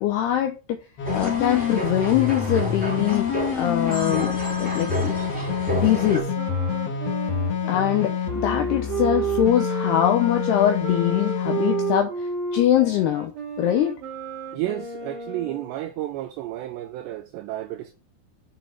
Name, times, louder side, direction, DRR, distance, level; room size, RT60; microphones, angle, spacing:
voice 1, 0.0-0.8 1.1-3.3 3.6-4.3 4.6-5.1 5.7-6.3 7.7-13.3 13.6-13.9, left 11 dB, 80° left, 2.3 m, -22 dB
sound 1, 1.0-12.0, left 7 dB, 60° left, 1.6 m, -27 dB
sound 2, 1.0-6.2, right 1 dB, ahead, 2.6 m, -31 dB
Wind instrument woodwind instrument, 5.7-15.7, right 5 dB, 55° right, 2.6 m, -31 dB
voice 2, 14.5-17.9, right 14 dB, 90° right, 2.4 m, -31 dB
7.7 x 6.9 x 4.5 m
omnidirectional pair, 5.7 m